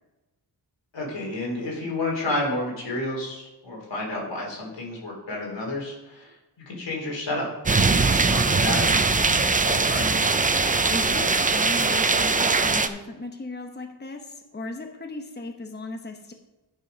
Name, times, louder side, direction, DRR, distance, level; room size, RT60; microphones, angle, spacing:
voice 1, 0.9-6.4 6.7-10.1, left 2 dB, 85° left, -2 dB, 3.2 m, -31 dB
sound 1, 7.7-12.9, right 4 dB, 20° right, 0.5 m, -21 dB
voice 2, 10.9-16.3, left 2 dB, 25° left, 4 dB, 1.1 m, -36 dB
11.5 x 4.9 x 5.2 m, 1.0 s
wide cardioid pair, 80°, 43 cm